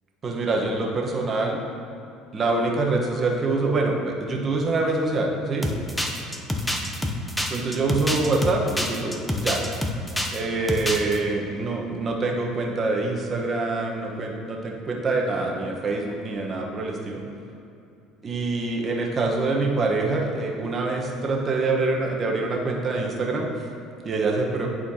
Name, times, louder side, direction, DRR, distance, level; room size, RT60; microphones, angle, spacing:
voice 1, 0.2-1.6 2.3-5.7 7.5-9.6 10.3-17.2 18.2-23.5 24.0-24.7, right 3 dB, 35° right, 0 dB, 1.2 m, -25 dB
sound 1, 5.6-10.4 10.7-11.2, left 1 dB, 5° left, 0.7 m, -27 dB
11.5 x 4.3 x 2.9 m, 2.7 s
supercardioid pair, 85°, 0 cm